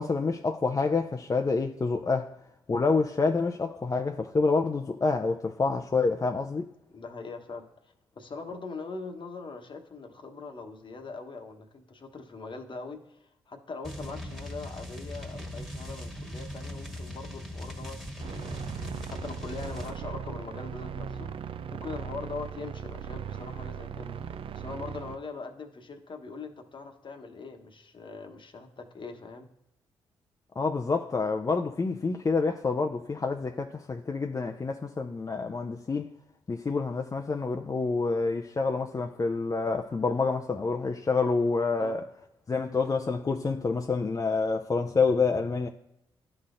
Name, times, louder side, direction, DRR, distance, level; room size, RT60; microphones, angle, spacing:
voice 1, 0.0-2.4 2.7-6.6 30.6-36.1 36.5-42.0 42.5-45.7, left 4 dB, 30° left, 0.5 m, -27 dB
voice 2, 5.9-6.4 6.9-7.7 8.1-18.7 19.1-29.5 41.8-42.0, left 4 dB, 45° left, 1.1 m, -42 dB
sound 1, 13.8-20.0, left 1 dB, 5° right, 1.6 m, -40 dB
sound 2, 18.2-25.2, right 7 dB, 50° right, 0.4 m, -38 dB
12.0 x 4.0 x 2.5 m
hypercardioid pair, 45°, 12 cm